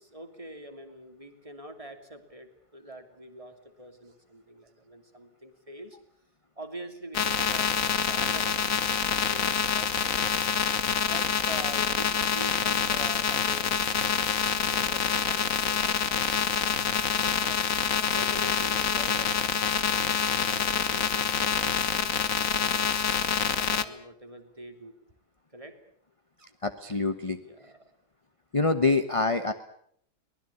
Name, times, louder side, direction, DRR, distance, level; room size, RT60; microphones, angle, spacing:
voice 1, 0.0-6.0 6.6-8.8 9.1-10.2 11.0-16.7 17.1-17.7 18.1-23.0 23.5-25.0 25.5-25.8 27.4-27.9, right 1 dB, 20° right, 6 dB, 2.9 m, -45 dB
sound 1, 7.1-23.9, left 7 dB, 55° left, 1.6 m, -26 dB
voice 2, 26.6-27.4 28.5-29.5, left 3 dB, 20° left, 9 dB, 1.1 m, -25 dB
23.5 x 20.0 x 8.5 m, 0.67 s
omnidirectional pair, 1.7 m